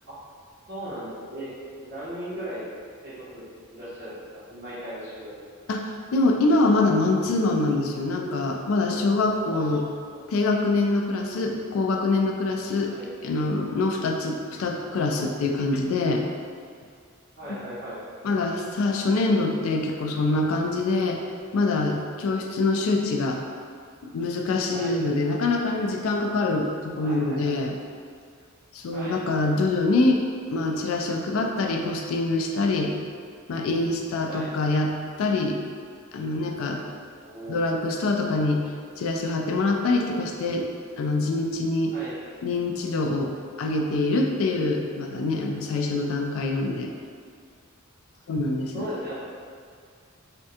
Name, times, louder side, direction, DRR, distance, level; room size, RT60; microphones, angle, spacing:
voice 1, 0.7-1.5 1.8-2.6 3.0-3.4 3.7-5.4 9.5-9.8 10.1-10.2 12.9-13.1 17.4-18.0 24.7-25.0 27.0-27.6 28.9-29.2 34.3-34.5 37.2-37.6 41.9-42.2 48.7-49.2, right 1 dB, 50° right, -13 dB, 1.0 m, -37 dB
voice 2, 5.7-9.8 10.3-12.9 13.2-16.2 18.2-21.2 21.5-23.4 24.1-27.8 28.7-30.2 30.5-32.9 33.5-35.6 36.1-36.8 37.5-38.6 39.0-40.7 41.0-41.9 42.4-43.3 43.6-46.9 48.3-48.9, left 2 dB, 70° left, 2 dB, 0.3 m, -24 dB
3.4 x 2.2 x 2.7 m, 2.1 s
head